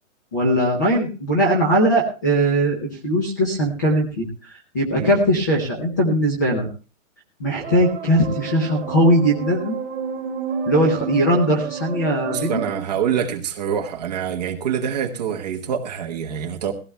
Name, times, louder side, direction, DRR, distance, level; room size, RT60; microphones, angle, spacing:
voice 1, 0.3-6.7 7.4-9.7 10.7-12.6, right 1 dB, 15° left, 1 dB, 0.6 m, -20 dB
sound 1, 7.5-12.8, right 6 dB, 60° right, 2.3 m, -30 dB
voice 2, 12.2-16.7, right 8 dB, 30° right, 2 dB, 1.1 m, -25 dB
19.5 x 15.5 x 2.2 m, 0.34 s
hypercardioid pair, 180°, 40 cm